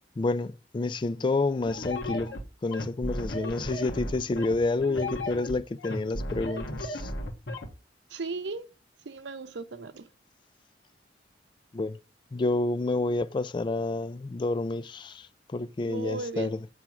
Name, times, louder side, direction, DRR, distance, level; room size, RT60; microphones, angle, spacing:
voice 1, 0.2-2.4 2.6-7.1 11.7-12.0 12.3-15.3 15.5-16.7, left 2 dB, 25° left, 0.3 m, -29 dB
sound 1, 1.7-7.7, left 1 dB, 75° left, 1.4 m, -34 dB
voice 2, 8.1-8.7 9.1-10.1 15.9-16.5, right 3 dB, 75° right, 0.7 m, -36 dB
7.5 x 3.5 x 5.8 m
head